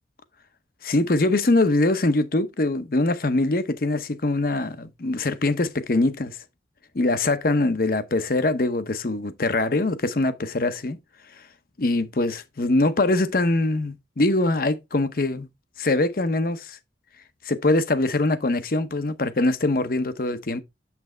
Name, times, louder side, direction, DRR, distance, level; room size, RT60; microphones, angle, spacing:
voice 1, 0.8-6.4 6.9-11.0 11.8-15.5 15.8-16.8 17.4-20.6, left 2 dB, 55° left, 0.8 m, -23 dB
7.6 x 5.9 x 3.3 m
head